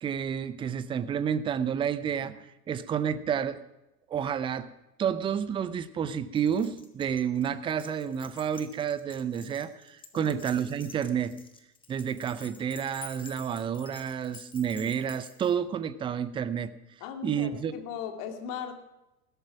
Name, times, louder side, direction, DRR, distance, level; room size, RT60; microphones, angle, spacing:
voice 1, 0.0-3.6 4.1-4.7 5.0-11.4 11.9-16.7 17.2-17.7, right 8 dB, 10° right, 15 dB, 0.5 m, -30 dB
Keys jangling, 6.4-15.6, left 4 dB, 10° left, 1.6 m, -50 dB
voice 2, 17.0-18.7, left 8 dB, 40° left, 6 dB, 2.4 m, -38 dB
16.0 x 13.5 x 5.9 m, 0.93 s
figure-of-eight pair, 90°, 46 cm